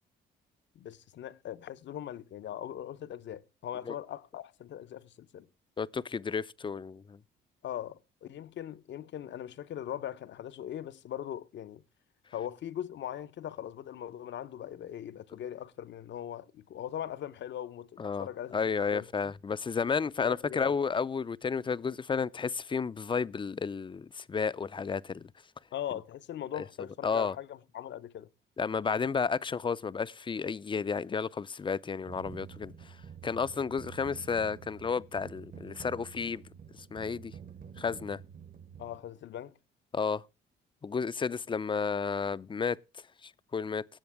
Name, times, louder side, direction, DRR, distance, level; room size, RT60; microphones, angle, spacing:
voice 1, 0.7-5.5 7.6-11.8 12.3-18.6 18.9-19.3 20.2-20.7 25.7-28.3 38.8-39.6, left 10 dB, 65° left, 0.9 m, -40 dB
voice 2, 5.8-7.2 18.0-18.3 18.5-25.3 26.5-26.6 27.0-27.3 28.6-33.0 33.2-36.4 36.9-37.3 37.8-38.2 39.9-40.2 40.8-42.8 43.2-43.9, left 5 dB, 25° left, 0.5 m, -32 dB
sound 1, 32.1-39.0, right 7 dB, 45° right, 1.2 m, -48 dB
18.0 x 7.6 x 3.5 m
cardioid pair, 90°, 20 cm